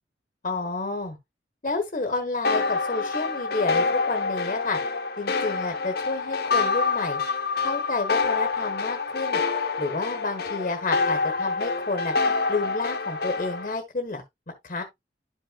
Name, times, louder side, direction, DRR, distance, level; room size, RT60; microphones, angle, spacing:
voice 1, 0.4-1.2 1.6-4.8 5.2-7.2 7.6-9.4 9.8-12.2 12.5-14.2 14.6-14.8, left 3 dB, 45° left, 1.3 m, -30 dB
sound 1, 2.4-13.7, left 4 dB, 60° left, 1.1 m, -26 dB
11.5 x 5.4 x 2.3 m
head